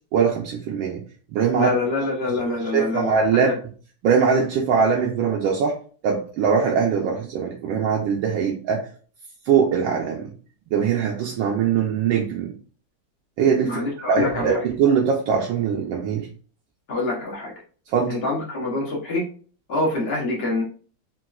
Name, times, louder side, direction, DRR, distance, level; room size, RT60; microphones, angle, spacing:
voice 1, 0.1-1.0 1.3-1.7 2.6-3.5 4.0-5.7 6.0-8.9 9.5-10.3 10.7-12.5 13.4-16.3 17.9-18.2, right 6 dB, 75° right, -1 dB, 1.3 m, -21 dB
voice 2, 1.5-3.5 13.6-14.7 16.9-17.5 18.1-19.2 19.7-20.6, left 2 dB, 60° left, -3 dB, 0.6 m, -25 dB
4.0 x 2.4 x 2.3 m, 0.42 s
omnidirectional pair, 2.3 m